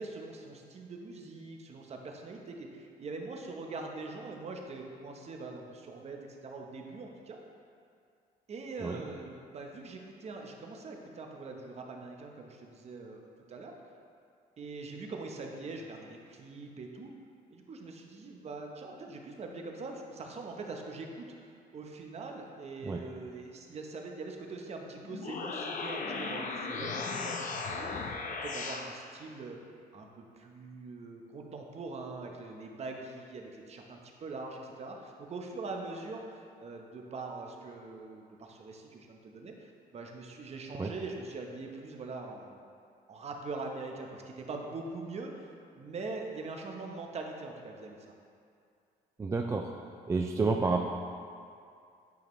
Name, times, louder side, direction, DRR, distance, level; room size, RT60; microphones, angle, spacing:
voice 1, 0.0-7.4 8.5-13.2 13.5-13.7 14.6-17.1 17.5-29.6 29.9-42.6 43.1-48.1, right 3 dB, 40° right, 2 dB, 0.9 m, -43 dB
sound 1, 25.0-28.9, left 4 dB, 50° left, 0.7 m, -36 dB
voice 2, 49.2-49.7 50.1-50.8, right 3 dB, 15° right, 2 dB, 0.3 m, -29 dB
9.3 x 5.1 x 3.1 m, 2.4 s
cardioid pair, 110°, 17 cm